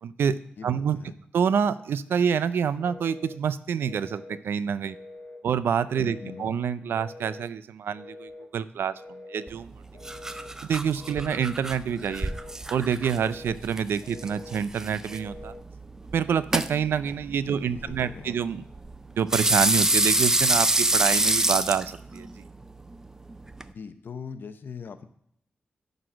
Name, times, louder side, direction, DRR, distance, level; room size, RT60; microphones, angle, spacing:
voice 1, 0.0-1.0 1.3-5.0 5.4-9.0 9.3-9.7 10.6-12.3 12.7-15.5 16.1-18.6 19.2-22.4, right 7 dB, 85° right, 15 dB, 0.4 m, -27 dB
voice 2, 0.6-1.2 6.0-6.6 17.4-18.4 23.7-25.0, left 6 dB, 65° left, 10 dB, 0.7 m, -41 dB
Telephone, 2.8-3.4 3.8-4.4 4.8-5.4 5.9-6.4 6.9-7.5 7.9-8.5 8.9-9.5 9.9-10.5 11.0-11.5 12.0-12.6 13.0-13.6 14.0-14.6 15.0-15.6, left 2 dB, 80° left, 1.4 m, -45 dB
sound 1, 9.5-23.7, right 2 dB, 15° right, 0.4 m, -28 dB
11.0 x 4.1 x 6.1 m, 0.73 s
wide cardioid pair, 105°, 4 cm